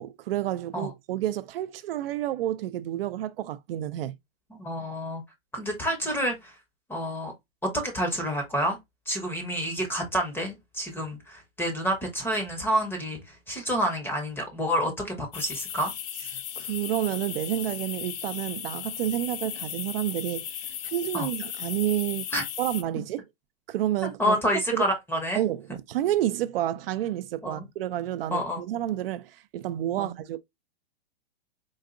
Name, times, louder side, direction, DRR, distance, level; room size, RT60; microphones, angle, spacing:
voice 1, 0.0-4.1 16.6-20.5 20.8-22.3 22.6-23.3 23.7-24.4 24.7-24.9 25.4-30.4, right 13 dB, 70° right, 0.4 m, -29 dB
voice 2, 4.5-5.2 5.5-6.5 6.9-7.3 7.6-8.8 9.1-15.9 21.1-21.3 22.3-22.4 24.0-25.4 27.4-27.6 28.3-28.6 30.0-30.1, equal, 5° left, 0.7 m, -28 dB
sound 1, 15.3-22.8, left 10 dB, 60° left, 0.6 m, -36 dB
3.9 x 2.5 x 2.5 m
hypercardioid pair, 135°, 31 cm